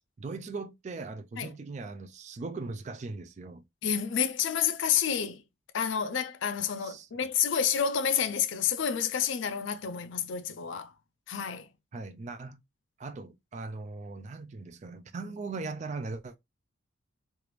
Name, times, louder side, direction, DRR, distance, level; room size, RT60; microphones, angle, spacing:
voice 1, 0.0-3.6 6.8-7.1 11.9-12.6 13.0-16.4, right 3 dB, 35° right, 0.3 m, -39 dB
voice 2, 3.8-5.4 5.7-10.9 11.3-11.7, left 8 dB, 70° left, 0.4 m, -29 dB
3.3 x 2.4 x 3.0 m
head